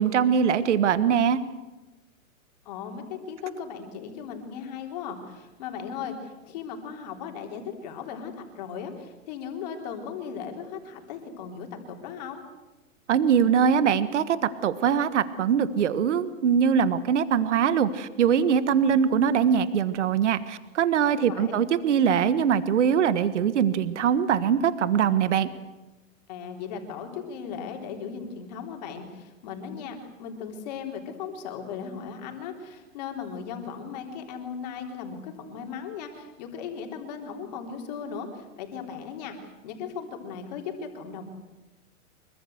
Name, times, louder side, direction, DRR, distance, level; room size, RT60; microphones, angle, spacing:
voice 1, 0.0-1.4 13.1-14.4 14.6-25.5, right 7 dB, 55° right, 14 dB, 1.5 m, -22 dB
voice 2, 2.7-12.4 21.3-21.6 26.3-41.2, left 6 dB, 30° left, 3 dB, 3.5 m, -37 dB
25.0 x 23.5 x 7.9 m, 1.1 s
hypercardioid pair, 180°, 41 cm